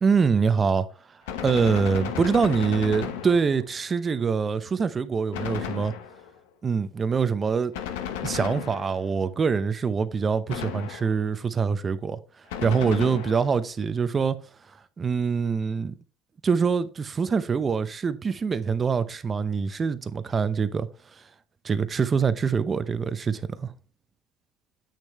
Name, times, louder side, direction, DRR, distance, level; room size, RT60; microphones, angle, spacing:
voice 1, 0.0-0.9 1.4-5.9 6.6-7.7 8.2-12.2 12.6-14.4 15.0-15.9 16.4-20.9 21.6-23.7, right 5 dB, 30° right, 0.7 m, -24 dB
Gunshot gunfire, 1.3-3.8 5.3-6.4 7.7-9.2 10.5-11.3 12.5-13.6, left 9 dB, 85° left, 1.0 m, -34 dB
8.4 x 6.5 x 3.1 m
supercardioid pair, 90°, 0 cm